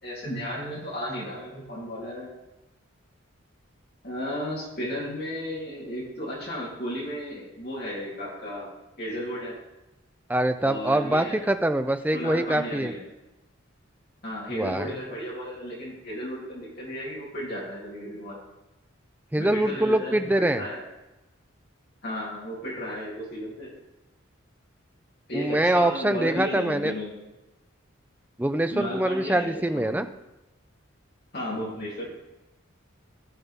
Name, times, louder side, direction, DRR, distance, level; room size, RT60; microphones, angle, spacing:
voice 1, 0.0-2.3 4.0-8.7 9.0-9.5 10.6-11.4 12.1-13.0 14.2-18.4 19.4-20.8 22.0-23.7 25.3-27.1 28.7-30.1 31.3-32.1, equal, 50° left, -5 dB, 3.5 m, -34 dB
voice 2, 10.3-12.9 14.5-15.0 19.3-20.6 25.3-26.9 28.4-30.1, right 1 dB, 10° right, 8 dB, 0.4 m, -24 dB
15.5 x 5.7 x 3.6 m, 1.0 s
head